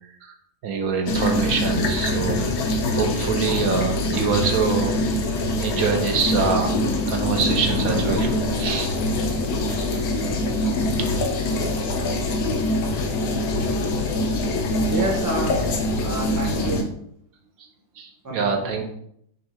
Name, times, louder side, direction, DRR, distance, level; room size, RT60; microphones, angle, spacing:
voice 1, 0.6-5.0 5.6-6.8 7.1-8.9 9.7-10.1 10.6-10.7 11.0-11.2 17.6-17.7 18.0-18.9, right 5 dB, 70° right, 3 dB, 1.0 m, -25 dB
sound 1, 1.1-16.8, left 1 dB, 70° left, 1.1 m, -24 dB
voice 2, 14.9-15.6 16.0-16.8 18.2-18.8, right 2 dB, 30° right, -1 dB, 0.3 m, -28 dB
4.4 x 2.3 x 4.2 m, 0.71 s
omnidirectional pair, 1.7 m